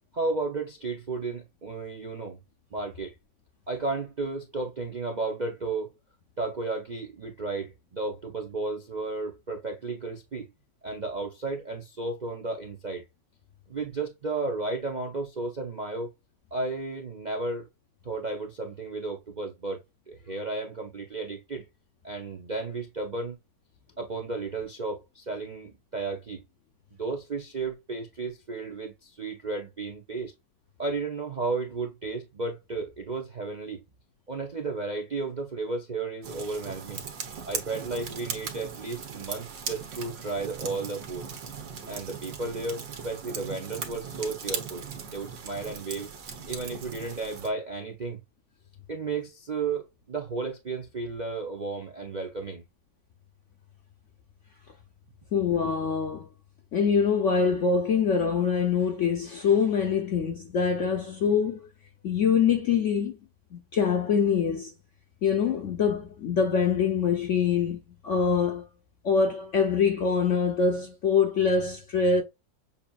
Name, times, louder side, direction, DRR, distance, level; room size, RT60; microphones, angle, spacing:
voice 1, 0.1-2.4 2.7-3.1 3.7-5.9 6.4-10.5 10.8-13.0 13.7-16.1 16.5-17.7 18.0-19.8 20.1-21.6 22.0-23.4 24.0-26.4 27.0-30.3 30.8-33.8 34.3-37.0 37.4-41.3 41.9-46.1 46.5-48.2 48.9-52.6, right 3 dB, 60° right, 0.4 m, -33 dB
sound 1, 36.2-47.5, right 6 dB, 80° right, 1.9 m, -38 dB
voice 2, 55.3-56.3 56.7-61.7 62.0-63.2 63.5-64.7 65.2-68.7 69.0-72.2, left 6 dB, 55° left, 0.8 m, -24 dB
7.0 x 2.9 x 2.3 m
omnidirectional pair, 2.0 m